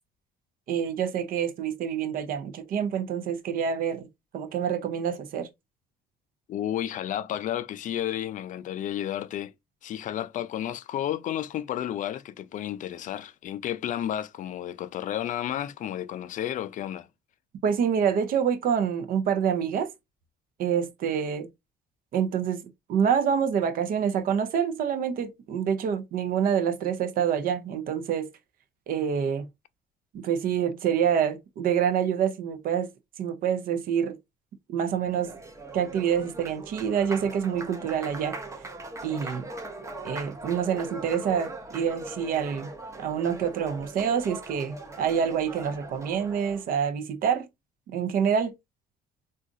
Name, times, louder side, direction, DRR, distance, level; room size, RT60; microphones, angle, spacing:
voice 1, 0.7-4.1 4.3-5.5 17.6-19.9 20.6-21.5 22.1-22.6 22.9-28.3 28.9-29.5 30.2-32.9 33.2-34.1 34.7-35.3 35.7-38.4 39.0-39.5 40.0-42.7 43.0-47.5 47.9-48.5, right 8 dB, 60° right, 0.6 m, -27 dB
voice 2, 6.5-9.5 9.8-17.1, left 11 dB, 50° left, 0.4 m, -32 dB
Applause, 34.8-46.7, right 2 dB, 15° right, 0.7 m, -40 dB
3.8 x 2.4 x 2.5 m
cardioid pair, 110°, 17 cm